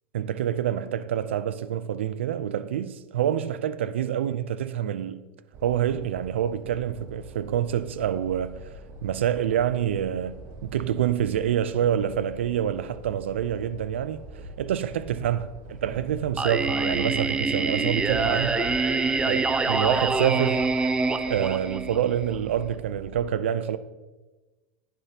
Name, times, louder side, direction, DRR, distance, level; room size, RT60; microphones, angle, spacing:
voice 1, 0.1-5.2 5.6-8.6 9.0-14.2 14.6-18.6 19.2-20.7 21.3-23.8, right 10 dB, 85° right, 0.5 m, -27 dB
sound 1, 5.5-23.2, right 2 dB, 45° right, 1.3 m, -44 dB
Singing, 16.4-22.3, right 3 dB, 15° right, 0.6 m, -25 dB
10.5 x 10.0 x 2.9 m
hypercardioid pair, 110°, 6 cm